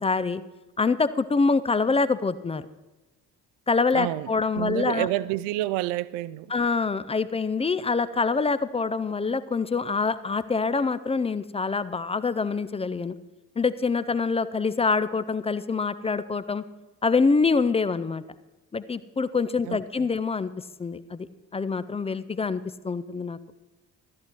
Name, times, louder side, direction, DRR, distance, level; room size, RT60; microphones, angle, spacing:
voice 1, 0.0-0.4 0.8-2.7 3.7-5.1 6.5-13.2 13.6-16.6 17.0-18.2 18.7-20.5 20.8-21.3 21.5-23.4, left 4 dB, 15° left, 0.4 m, -25 dB
voice 2, 3.9-4.3 4.6-6.5 19.7-20.1, right 16 dB, 60° right, 0.6 m, -29 dB
13.0 x 11.0 x 4.4 m
figure-of-eight pair, 40°, 50 cm